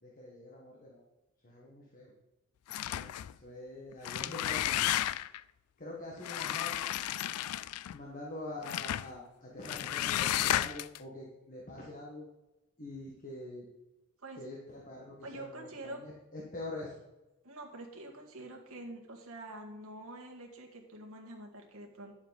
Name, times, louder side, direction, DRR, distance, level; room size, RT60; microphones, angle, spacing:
voice 1, 0.0-1.1 1.4-2.1 2.9-4.9 5.8-6.8 7.9-12.3 12.8-13.7 14.4-17.0, left 2 dB, 40° left, -3 dB, 1.6 m, -45 dB
sound 1, 2.7-3.3 3.9-5.4 6.2-8.0 8.6-9.1 9.6-11.0, left 13 dB, 90° left, 0.3 m, -33 dB
voice 2, 15.2-16.0 17.4-22.2, right 1 dB, 70° right, 0 dB, 1.8 m, -46 dB
10.5 x 7.1 x 4.1 m, 0.98 s
head